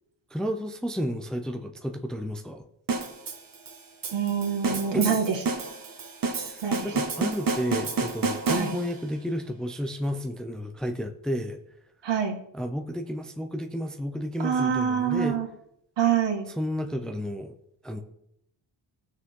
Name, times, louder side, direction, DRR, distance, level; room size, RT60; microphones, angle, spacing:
voice 1, 0.3-2.7 4.7-5.2 6.4-11.6 12.5-15.4 16.5-17.5 17.8-18.0, equal, ahead, 4 dB, 0.6 m, -32 dB
sound 1, 2.9-9.1, right 4 dB, 45° right, 1.6 m, -30 dB
voice 2, 4.1-5.4 6.6-6.8 8.5-8.7 12.0-12.4 14.4-15.5 16.0-16.5, right 7 dB, 60° right, 1 dB, 2.1 m, -25 dB
17.0 x 6.4 x 3.8 m, 0.76 s
wide cardioid pair, 150°, 46 cm